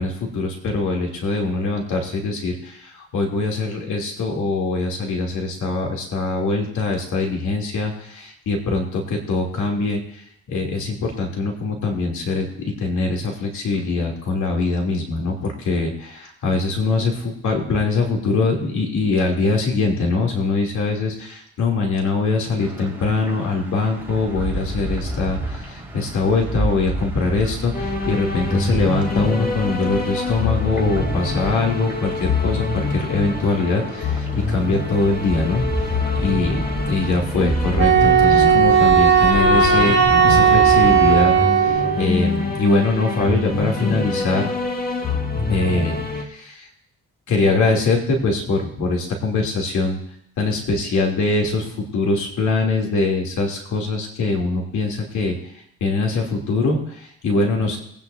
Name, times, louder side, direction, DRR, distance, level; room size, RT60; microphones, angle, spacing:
voice 1, 0.0-10.2 10.5-35.6 36.2-36.6 36.9-40.0 40.2-41.3 41.6-44.5 45.5-46.7 47.3-50.0 50.4-55.5 55.8-57.8, left 3 dB, 75° left, 0 dB, 3.0 m, -22 dB
sound 1, 22.6-41.5, right 1 dB, 5° right, 4.3 m, -30 dB
sound 2, 27.7-46.2, left 3 dB, 30° left, 1.8 m, -26 dB
Wind instrument woodwind instrument, 37.8-42.0, right 7 dB, 40° right, 1.7 m, -15 dB
22.0 x 9.6 x 2.7 m, 0.71 s
cardioid pair, 90°, 30 cm